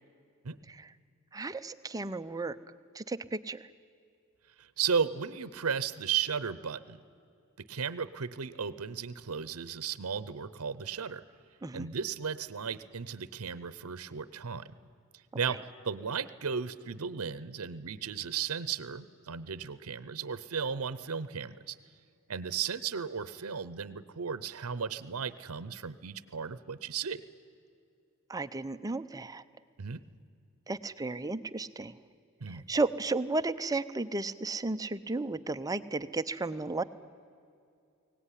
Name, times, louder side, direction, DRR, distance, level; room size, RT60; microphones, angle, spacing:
voice 1, 1.3-2.6 2.9-3.7 11.6-11.9 15.4-15.6 28.3-29.4 30.7-32.0 32.5-36.8, right 3 dB, 15° right, 11 dB, 0.6 m, -34 dB
voice 2, 4.6-7.0 7.7-11.2 11.7-14.6 15.3-21.8 22.3-27.2 29.8-30.0 32.4-32.6, right 6 dB, 80° right, 16 dB, 0.7 m, -35 dB
23.0 x 18.0 x 10.0 m, 2.5 s
head